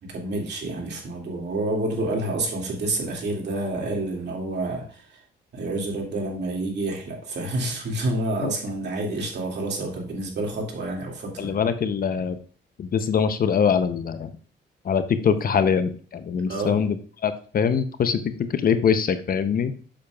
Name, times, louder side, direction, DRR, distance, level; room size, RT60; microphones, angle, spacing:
voice 1, 0.0-5.2 5.5-11.6 16.5-16.8, right 2 dB, 60° right, 0 dB, 2.3 m, -28 dB
voice 2, 11.4-12.4 12.8-14.3 14.8-17.0 17.2-19.7, left 7 dB, 45° left, 11 dB, 0.6 m, -23 dB
7.5 x 6.7 x 2.3 m, 0.41 s
cardioid pair, 90°, 20 cm